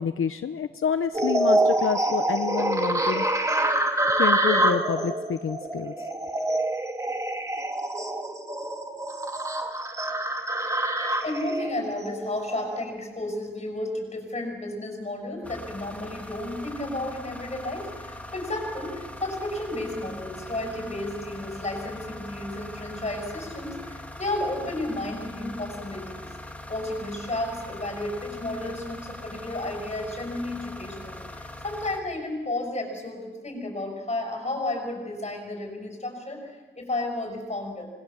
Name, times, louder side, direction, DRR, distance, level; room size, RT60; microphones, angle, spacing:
voice 1, 0.0-3.3 4.2-6.1, left 7 dB, 80° left, 9 dB, 0.8 m, -28 dB
sound 1, 1.1-12.9, right 1 dB, 15° right, 2.1 m, -26 dB
voice 2, 10.9-26.3 26.7-37.9, left 1 dB, 30° left, 3 dB, 6.6 m, -32 dB
sound 2, 15.4-32.0, left 1 dB, 5° left, 2.3 m, -41 dB
25.5 x 20.5 x 7.3 m, 1.3 s
wide cardioid pair, 150°, 21 cm